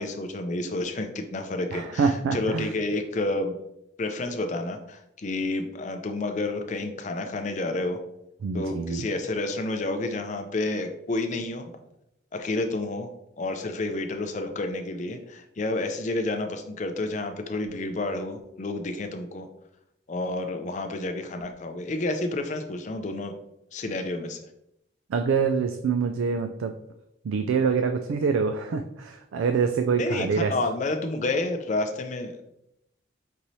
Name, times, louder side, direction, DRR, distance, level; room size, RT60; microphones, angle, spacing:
voice 1, 0.0-3.5 4.0-8.0 8.5-11.7 12.3-13.1 13.4-19.5 20.1-23.4 23.7-24.4 30.0-32.4, left 2 dB, 35° left, 6 dB, 0.4 m, -30 dB
voice 2, 1.7-2.7 8.4-9.1 25.1-26.7 27.2-30.5, right 5 dB, 85° right, 6 dB, 0.3 m, -25 dB
5.3 x 3.0 x 2.7 m, 0.81 s
head